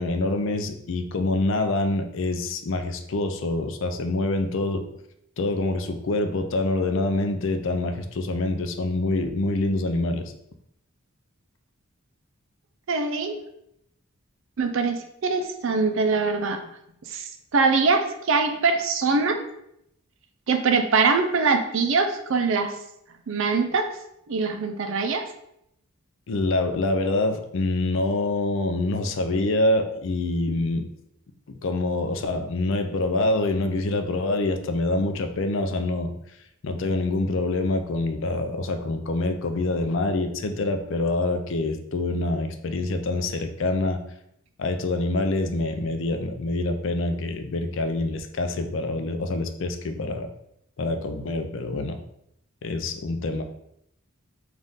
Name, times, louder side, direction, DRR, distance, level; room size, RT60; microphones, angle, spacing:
voice 1, 0.0-4.8 5.4-10.3 26.3-30.8 31.5-36.1 36.6-44.0 44.6-50.3 50.8-52.0 52.6-53.4, left 2 dB, 60° left, 7 dB, 0.4 m, -26 dB
voice 2, 12.9-13.4 14.6-16.6 17.1-19.4 20.5-22.7 23.3-23.9 24.3-25.3, right 4 dB, 60° right, 6 dB, 0.4 m, -23 dB
3.6 x 2.5 x 3.9 m, 0.76 s
head